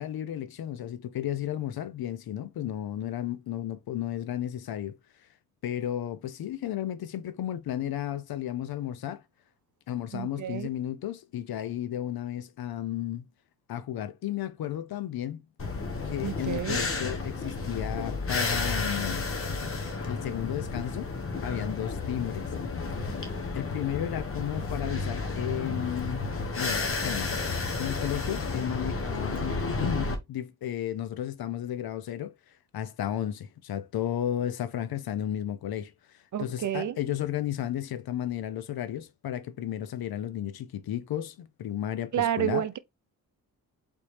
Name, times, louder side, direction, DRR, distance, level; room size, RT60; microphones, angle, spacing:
voice 1, 0.0-5.0 5.6-9.2 9.9-13.2 13.7-15.4 16.1-19.2 20.1-21.1 21.4-22.5 23.5-27.3 27.6-32.3 32.7-42.6, left 11 dB, 75° left, 0.6 m, -33 dB
voice 2, 10.1-10.7 16.2-16.8 36.3-37.0 42.1-42.8, right 11 dB, 55° right, 0.6 m, -30 dB
sound 1, 15.6-30.2, left 3 dB, 35° left, 1.1 m, -32 dB
4.0 x 3.5 x 3.2 m
cardioid pair, 75°, 37 cm